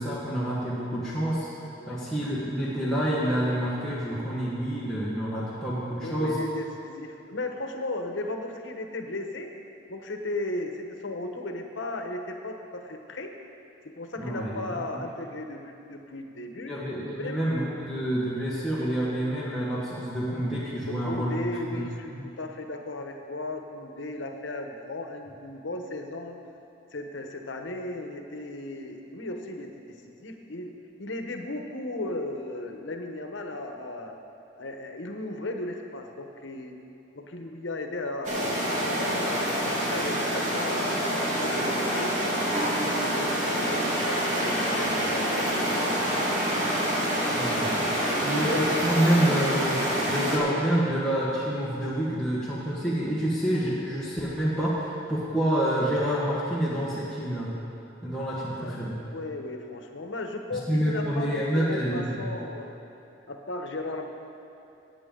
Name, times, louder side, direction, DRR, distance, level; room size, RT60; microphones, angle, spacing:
voice 1, 0.0-1.5 1.9-6.3 14.2-14.6 16.7-21.3 21.7-21.8 22.1-22.2 47.3-47.9 48.2-49.8 50.1-57.5 58.0-59.0 60.7-62.2, right 1 dB, 5° left, -10 dB, 1.4 m, -27 dB
voice 2, 6.0-9.5 9.9-13.3 14.0-16.8 17.2-17.5 20.9-26.4 26.9-30.7 31.0-34.2 34.6-36.8 37.1-42.1 42.6-45.3 45.7-46.7 48.2-48.8 58.6-58.8 59.1-62.8 63.3-64.0, left 2 dB, 80° left, 4 dB, 1.0 m, -36 dB
sound 1, 38.2-50.4, equal, 40° right, 1.9 m, -27 dB
16.0 x 8.8 x 3.8 m, 2.7 s
head